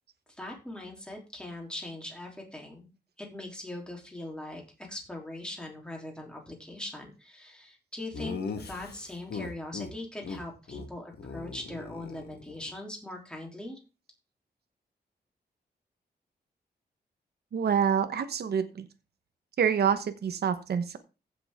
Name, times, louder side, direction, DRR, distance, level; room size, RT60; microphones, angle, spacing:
voice 1, 0.4-2.9 3.2-4.6 4.9-13.8, left 1 dB, 5° left, 0 dB, 3.4 m, -41 dB
Laughter, 8.1-9.9 10.2-10.4 10.7-10.9 11.1-12.7, left 4 dB, 70° left, 1.6 m, -38 dB
voice 2, 17.5-18.9 19.6-21.0, right 7 dB, 70° right, 9 dB, 1.1 m, -27 dB
15.5 x 6.9 x 3.7 m, 0.30 s
wide cardioid pair, 140°, 17 cm